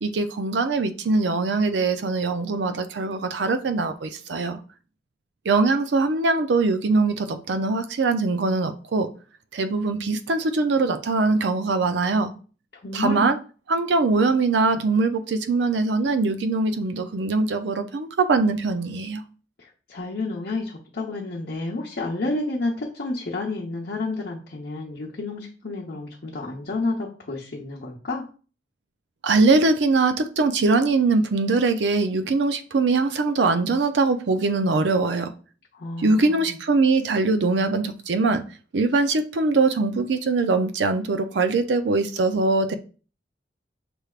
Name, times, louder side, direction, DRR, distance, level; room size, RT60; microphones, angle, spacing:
voice 1, 0.0-4.6 5.5-9.1 9.5-12.3 12.9-13.4 13.7-19.2 29.2-35.3 36.0-38.4 38.7-42.7, right 3 dB, 75° right, 0.5 m, -22 dB
voice 2, 12.7-13.3 19.6-28.2 35.7-36.6, left 2 dB, 60° left, 0.8 m, -30 dB
6.0 x 3.3 x 2.4 m
head